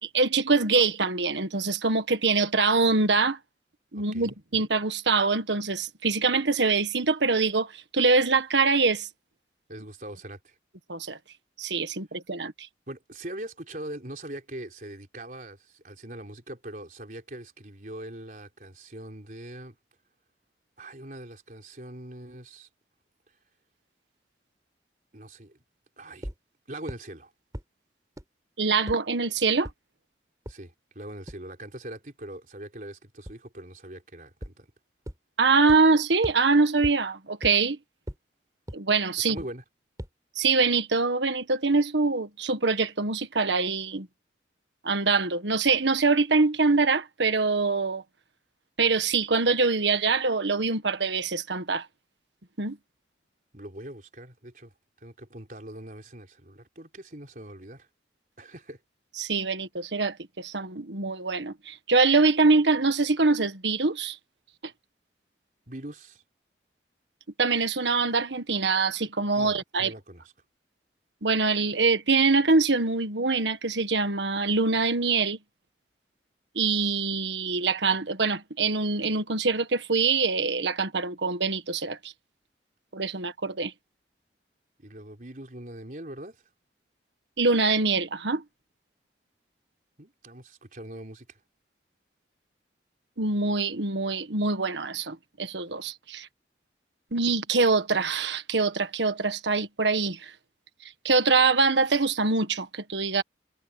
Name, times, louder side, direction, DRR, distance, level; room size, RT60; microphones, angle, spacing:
voice 1, 0.0-3.4 3.9-9.1 10.9-11.2 11.6-12.7 28.6-29.7 35.4-37.8 38.7-39.4 40.4-44.1 44.8-48.0 48.8-51.9 52.6-52.8 59.2-64.2 67.4-69.9 71.2-75.4 76.5-82.0 82.9-83.7 87.4-88.4 93.2-96.3 97.1-100.3 101.0-103.2, right 4 dB, 85° right, 1.6 m, -24 dB
voice 2, 3.9-4.3 9.7-10.6 12.9-19.8 20.8-22.7 25.1-25.6 26.0-26.3 26.7-27.3 30.5-34.7 39.3-39.6 53.5-54.7 55.0-57.9 58.4-58.8 65.7-66.2 69.4-70.2 84.8-86.4 90.0-91.4, right 1 dB, 45° right, 4.1 m, -42 dB
sound 1, 26.2-26.3 26.9-27.0 27.5-27.6 28.2-28.3 28.9-29.0 29.6-29.7 30.5-30.6 31.3-31.4 33.3-33.4 34.4-34.5 35.1-35.2 35.7-35.8 36.2-36.3 36.8-36.9 37.4-37.5 38.1-38.2 38.7-38.8 39.4-39.5 40.0-40.1, equal, 20° right, 4.2 m, -35 dB
head